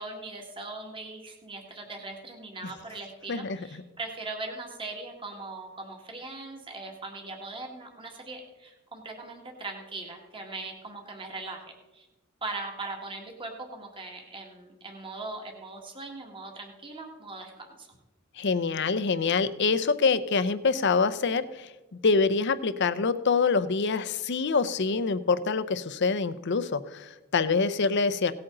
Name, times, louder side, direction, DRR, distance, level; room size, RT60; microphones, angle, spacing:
voice 1, 0.0-11.6 11.9-12.1 12.4-17.9, right 3 dB, 25° right, 2 dB, 1.8 m, -40 dB
voice 2, 18.4-21.7 22.0-28.3, left 4 dB, 55° left, 13 dB, 0.6 m, -25 dB
17.5 x 8.7 x 3.9 m, 1.1 s
head